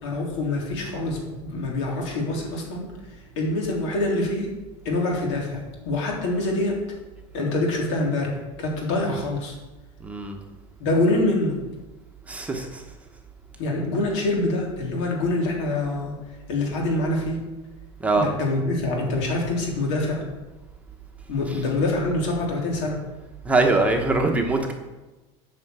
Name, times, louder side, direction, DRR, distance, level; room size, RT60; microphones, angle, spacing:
voice 1, 0.0-4.5 4.8-6.8 7.3-9.6 10.8-11.6 13.6-16.2 16.5-17.5 18.1-20.3 21.3-23.0, left 2 dB, 80° left, -1 dB, 3.5 m, -25 dB
voice 2, 10.0-10.4 12.3-12.8 18.0-18.3 23.4-24.7, right 3 dB, 10° right, 2 dB, 1.0 m, -22 dB
9.2 x 5.8 x 8.0 m, 1.1 s
cardioid pair, 165°, 15 cm